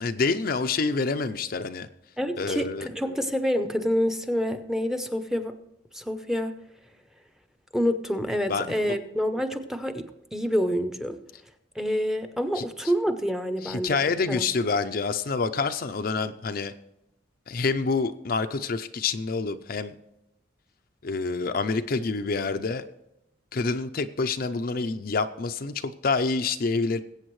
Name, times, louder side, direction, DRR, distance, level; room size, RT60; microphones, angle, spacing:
voice 1, 0.0-1.9 2.4-2.9 8.5-9.0 12.5-12.6 13.6-16.7 17.5-20.0 21.0-22.8 23.5-27.0, left 4 dB, 50° left, 8 dB, 0.5 m, -27 dB
voice 2, 2.2-5.6 5.9-6.6 7.7-11.2 11.8-14.0 14.3-14.5, equal, 5° right, 7 dB, 0.7 m, -27 dB
21.0 x 8.4 x 3.1 m, 0.87 s
head